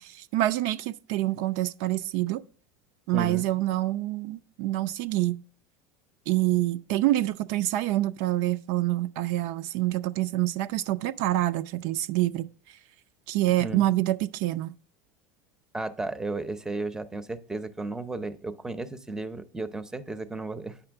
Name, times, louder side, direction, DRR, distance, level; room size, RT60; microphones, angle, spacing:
voice 1, 0.0-2.4 3.1-5.4 6.3-12.5 13.3-14.7, right 15 dB, 65° right, 0.4 m, -26 dB
voice 2, 3.1-3.5 13.6-13.9 15.7-20.9, right 2 dB, 5° right, 0.6 m, -34 dB
8.9 x 5.7 x 3.4 m
supercardioid pair, 110°, 9 cm